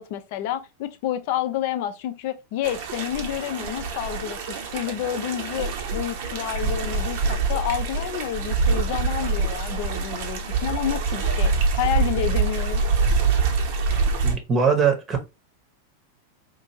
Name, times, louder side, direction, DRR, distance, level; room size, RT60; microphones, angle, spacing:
voice 1, 0.0-4.4 4.7-11.5 11.8-12.8, left 11 dB, 50° left, 0.5 m, -29 dB
sound 1, 2.6-14.4, right 4 dB, 50° right, 0.8 m, -25 dB
voice 2, 14.2-15.2, right 6 dB, 25° right, 0.9 m, -21 dB
4.5 x 2.5 x 2.8 m
figure-of-eight pair, 90°, 0 cm